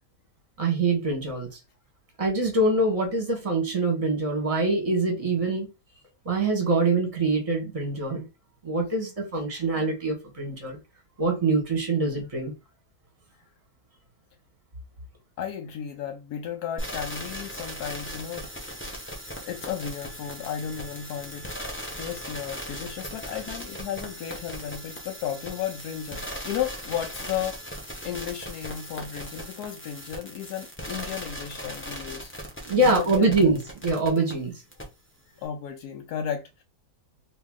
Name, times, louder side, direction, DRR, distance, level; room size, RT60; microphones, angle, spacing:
voice 1, 0.6-1.5 2.2-5.7 6.2-8.2 8.6-10.8 11.2-12.5 32.6-34.5, right 2 dB, 25° right, 1.0 m, -24 dB
voice 2, 15.4-18.8 19.4-21.5 22.0-32.3 32.7-33.5 35.4-36.6, left 9 dB, 80° left, 1.1 m, -34 dB
sound 1, 16.8-34.3 34.7-34.8, equal, 20° left, 0.3 m, -38 dB
2.9 x 2.7 x 3.5 m
omnidirectional pair, 1.7 m